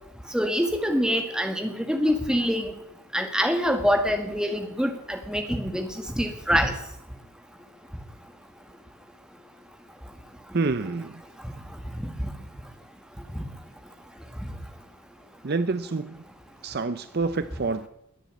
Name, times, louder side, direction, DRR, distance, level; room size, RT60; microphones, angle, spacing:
voice 1, 0.3-2.7 3.1-6.7 11.4-11.5 12.0-12.3 13.4-13.5, equal, 5° right, 5 dB, 1.7 m, -25 dB
voice 2, 10.5-11.2 15.4-16.2 16.6-17.9, right 3 dB, 45° right, 13 dB, 0.6 m, -27 dB
21.0 x 7.3 x 8.3 m, 0.77 s
head